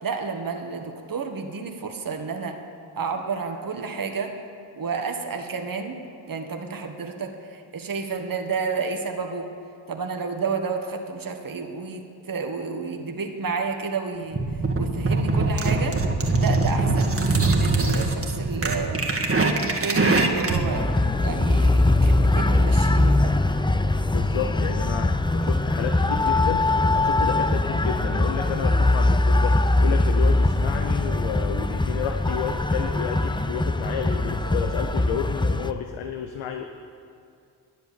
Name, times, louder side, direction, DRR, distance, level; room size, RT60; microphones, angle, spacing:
voice 1, 0.0-2.6 3.0-4.4 4.8-6.0 6.3-9.5 9.9-14.4 14.8-16.0 16.4-19.0 19.6-23.4, right 4 dB, 45° right, 3 dB, 1.7 m, -31 dB
sound 1, 14.3-20.7, right 3 dB, 30° right, 1.8 m, -22 dB
sound 2, 20.7-35.7, left 2 dB, 10° left, 0.6 m, -21 dB
voice 2, 24.1-36.6, left 7 dB, 80° left, 5 dB, 0.8 m, -31 dB
11.0 x 10.0 x 7.3 m, 2.3 s
hypercardioid pair, 40°, 48 cm